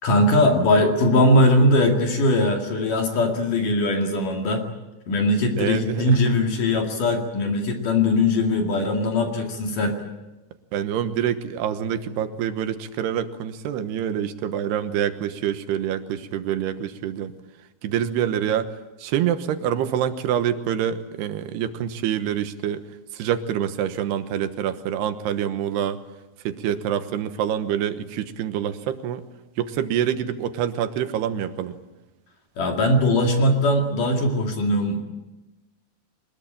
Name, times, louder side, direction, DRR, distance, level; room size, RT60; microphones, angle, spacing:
voice 1, 0.0-4.7 5.1-10.0 32.6-35.0, left 1 dB, 55° left, 2 dB, 3.7 m, -20 dB
voice 2, 5.6-6.3 10.7-17.3 17.8-18.7 19.0-22.8 23.1-26.0 26.4-29.2 29.6-31.8, right 9 dB, 85° right, 10 dB, 3.3 m, -26 dB
23.5 x 21.0 x 8.9 m, 1.1 s
omnidirectional pair, 4.6 m